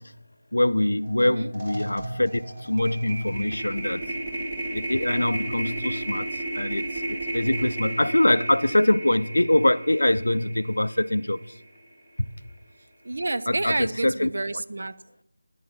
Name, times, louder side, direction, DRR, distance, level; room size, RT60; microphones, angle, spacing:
voice 1, 0.5-4.0 4.7-6.3 6.5-11.4 13.5-14.3, left 1 dB, 70° left, 0.5 m, -23 dB
sound 1, 1.0-1.2 1.5-11.8, right 1 dB, 30° right, 2.2 m, -33 dB
voice 2, 1.2-1.5 13.0-15.0, right 2 dB, 50° right, 0.5 m, -29 dB
10.0 x 9.3 x 6.0 m
figure-of-eight pair, 165°, 0 cm